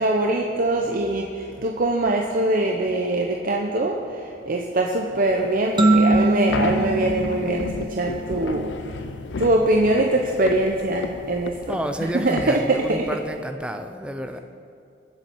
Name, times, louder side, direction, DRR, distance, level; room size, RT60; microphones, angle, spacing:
voice 1, 0.0-8.7 9.4-11.8 12.1-13.1, right 2 dB, 50° right, 1 dB, 0.9 m, -23 dB
sound 1, 5.3-13.4, left 4 dB, 80° left, 0.5 m, -33 dB
sound 2, 5.8-8.4, right 2 dB, 25° right, 1.2 m, -22 dB
voice 2, 11.7-14.4, right 1 dB, 5° right, 6 dB, 0.7 m, -30 dB
22.5 x 7.6 x 4.6 m, 2.5 s
head